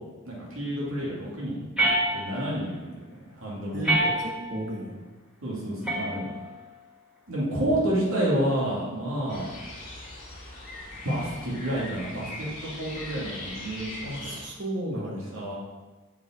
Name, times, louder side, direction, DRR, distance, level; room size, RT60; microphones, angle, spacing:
voice 1, 0.2-1.7 2.1-3.0 3.4-3.9 5.4-6.2 7.3-9.5 11.0-14.3 15.0-15.5, right 1 dB, 75° right, -5 dB, 2.5 m, -29 dB
sound 1, 1.8-2.6 3.8-4.6 5.8-6.7, right 1 dB, 5° right, 1.3 m, -27 dB
voice 2, 3.7-5.0 14.0-15.4, equal, 55° right, 0 dB, 1.3 m, -33 dB
sound 2, 9.3-14.4, left 2 dB, 35° left, 1.8 m, -40 dB
7.4 x 4.8 x 4.5 m, 1.2 s
head